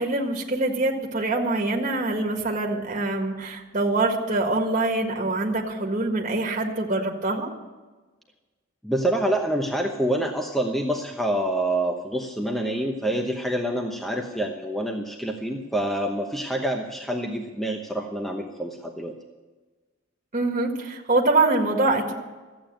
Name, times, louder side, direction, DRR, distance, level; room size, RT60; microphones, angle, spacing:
voice 1, 0.0-7.5 20.3-22.1, right 2 dB, 35° right, 0 dB, 1.8 m, -24 dB
voice 2, 8.8-19.1, right 1 dB, ahead, 2 dB, 0.9 m, -27 dB
14.0 x 8.8 x 9.0 m, 1.3 s
head